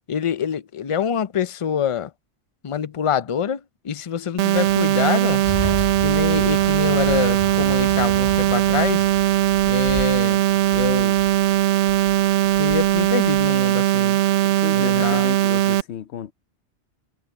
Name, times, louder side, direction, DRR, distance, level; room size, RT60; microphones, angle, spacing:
voice 1, 0.1-2.1 2.6-5.4 6.0-9.1 9.7-10.4 10.7-11.2 12.6-14.2 14.7-15.3, left 8 dB, 40° left, 0.5 m, -25 dB
sound 1, 4.4-15.8, right 14 dB, 85° right, 0.9 m, -19 dB
sound 2, 4.5-13.6, left 1 dB, 20° left, 2.3 m, -35 dB
voice 2, 14.4-16.3, left 9 dB, 70° left, 1.0 m, -33 dB
omnidirectional pair, 1.2 m